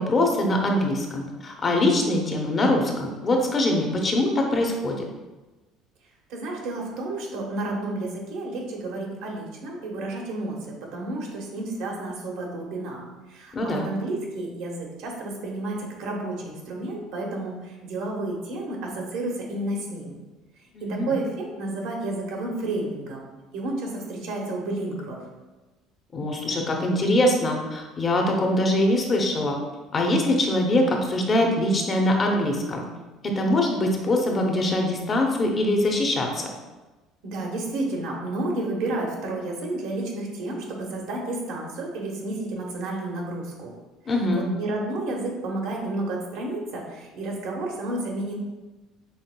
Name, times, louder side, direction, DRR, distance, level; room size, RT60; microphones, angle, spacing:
voice 1, 0.0-5.0 13.5-13.9 20.7-21.1 26.1-29.6 29.9-32.8 33.2-36.5 44.1-44.5, left 1 dB, 30° left, 1 dB, 0.7 m, -23 dB
voice 2, 6.3-13.0 13.3-20.1 20.8-25.2 37.2-43.7 44.3-48.3, right 2 dB, 75° right, -1 dB, 1.1 m, -31 dB
5.6 x 3.5 x 2.2 m, 1.2 s
cardioid pair, 130°, 0 cm